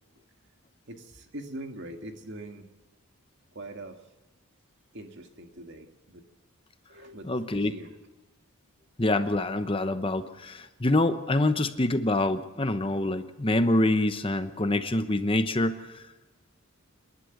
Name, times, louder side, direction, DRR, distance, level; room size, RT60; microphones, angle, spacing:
voice 1, 0.9-2.7 3.5-4.0 4.9-6.2 6.9-8.0, right 1 dB, 55° right, 5 dB, 2.1 m, -42 dB
voice 2, 7.3-7.7 9.0-16.0, left 1 dB, 25° left, 10 dB, 0.9 m, -26 dB
27.5 x 11.5 x 9.3 m, 1.1 s
head